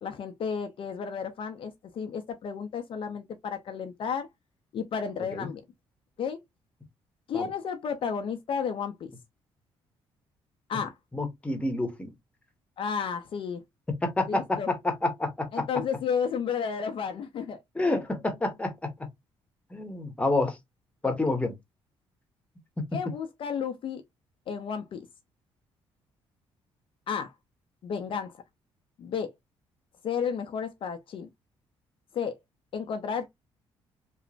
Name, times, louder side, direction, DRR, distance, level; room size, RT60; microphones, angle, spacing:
voice 1, 0.0-4.3 4.7-5.6 6.2-6.4 7.3-9.1 10.7-10.9 12.8-13.6 14.3-14.7 15.5-17.6 21.0-21.1 22.9-24.0 24.5-25.1 27.1-27.3 27.8-28.4 29.0-29.3 30.0-31.3 32.1-32.4 32.7-33.3, left 6 dB, 55° left, 0.5 m, -32 dB
voice 2, 11.1-12.1 13.9-15.7 17.8-18.9 19.7-20.6 21.0-21.5 22.8-22.9, left 2 dB, 10° left, 0.9 m, -28 dB
2.9 x 2.0 x 2.5 m
cardioid pair, 85°, 11 cm